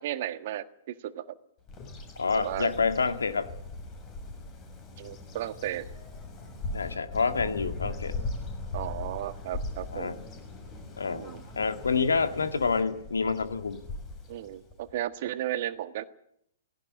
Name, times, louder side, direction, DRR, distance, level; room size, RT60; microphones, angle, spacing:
voice 1, 0.0-1.4 2.3-2.7 5.0-5.9 8.7-10.2 11.1-11.4 14.3-16.0, right 12 dB, 50° right, 11 dB, 1.5 m, -34 dB
Bird vocalization bird call bird song, 1.7-14.9, left 2 dB, 25° left, 6.7 m, -39 dB
voice 2, 2.2-3.5 6.7-8.2 9.9-10.2 11.0-11.3 11.6-13.8, left 4 dB, 75° left, 8 dB, 2.0 m, -28 dB
18.5 x 17.5 x 9.7 m, 0.74 s
figure-of-eight pair, 120°, 0 cm